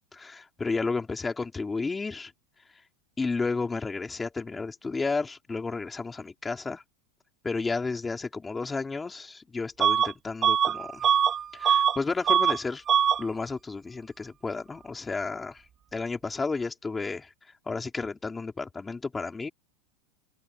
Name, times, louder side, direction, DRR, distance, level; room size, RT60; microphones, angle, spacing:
voice 1, 0.1-2.3 3.2-6.8 7.4-11.1 11.5-12.8 13.2-15.6 15.9-17.3 17.7-19.5, left 4 dB, 10° left, 3.4 m, -32 dB
Bus / Alarm, 9.8-10.1 10.4-12.0 12.2-12.6 12.9-13.2, right 8 dB, 25° right, 1.3 m, -22 dB
supercardioid pair, 155°, 0 cm